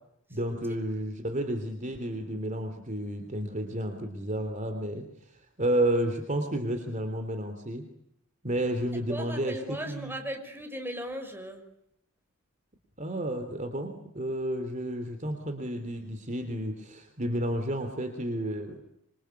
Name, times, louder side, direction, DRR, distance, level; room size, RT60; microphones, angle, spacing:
voice 1, 0.3-7.8 8.4-10.1 13.0-18.8, right 1 dB, 35° right, 7 dB, 3.3 m, -31 dB
voice 2, 9.1-11.6, equal, 10° right, 6 dB, 5.6 m, -37 dB
26.5 x 25.5 x 8.3 m, 0.77 s
head